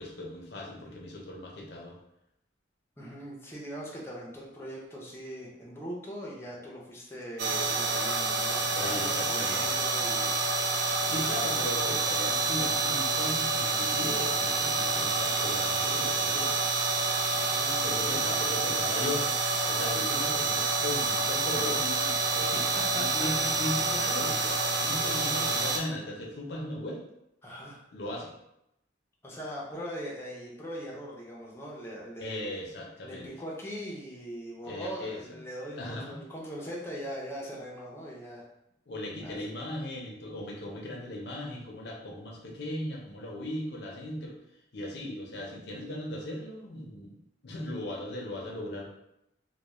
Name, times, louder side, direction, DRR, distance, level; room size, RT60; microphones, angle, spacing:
voice 1, 0.0-2.0 8.7-9.7 11.0-16.5 17.8-22.6 22.9-27.0 27.9-28.3 32.2-33.3 34.6-35.2 35.8-36.2 38.9-44.4 44.7-47.2 47.4-48.9, left 1 dB, 60° left, -1 dB, 0.6 m, -37 dB
voice 2, 3.0-10.4 11.1-11.4 17.5-18.2 22.6-23.3 27.4-27.8 29.2-32.5 33.0-38.4 39.2-39.4, equal, 15° left, -4 dB, 0.5 m, -41 dB
sound 1, 7.4-25.8, right 3 dB, 60° right, 0.4 m, -28 dB
2.2 x 2.2 x 3.0 m, 0.82 s
head